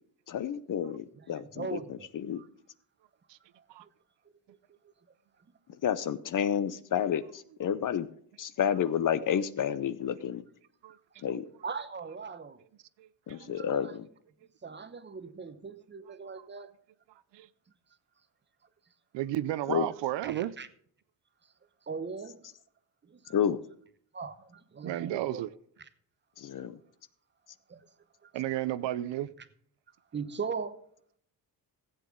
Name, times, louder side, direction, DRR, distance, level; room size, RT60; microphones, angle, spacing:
voice 1, 0.3-1.8 2.1-2.4 5.8-8.1 8.4-10.4 11.2-11.5 13.3-14.1 19.7-19.9 23.3-23.6 26.4-26.8, left 8 dB, 45° left, 0.7 m, -30 dB
voice 2, 1.1-2.1 2.3-2.5 3.6-3.9 4.5-4.9 10.9-11.2 11.6-12.6 13.4-14.0 14.6-16.7 18.6-18.7 20.2-20.7 21.4-21.5 21.8-22.5 23.0-23.4 24.1-25.4 25.8-25.9 27.7-27.9 28.2-28.7 29.4-29.5 30.1-30.8, right 5 dB, 25° right, 0.9 m, -40 dB
voice 3, 13.0-13.5 17.3-17.5 19.1-20.5 24.8-25.5 28.3-29.3, right 13 dB, 75° right, 0.6 m, -33 dB
15.0 x 8.1 x 3.7 m
cardioid pair, 110°, 44 cm